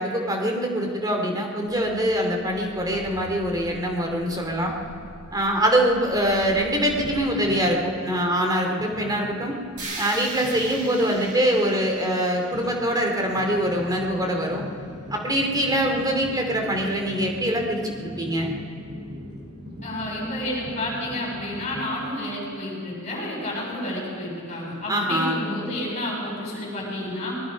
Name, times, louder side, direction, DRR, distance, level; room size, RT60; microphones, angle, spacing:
voice 1, 0.0-4.7 5.3-9.6 10.0-14.6 15.1-18.5 24.9-25.4, equal, 20° right, 1 dB, 2.7 m, -24 dB
sound 1, 1.6-7.6, equal, 5° left, 7.4 m, -46 dB
sound 2, 4.7-21.9, equal, 50° right, 6.2 m, -41 dB
sound 3, 9.8-13.8, right 2 dB, 90° right, 6.9 m, -39 dB
voice 2, 19.8-27.4, left 1 dB, 30° left, -3 dB, 7.2 m, -30 dB
24.0 x 21.0 x 5.3 m, 2.4 s
head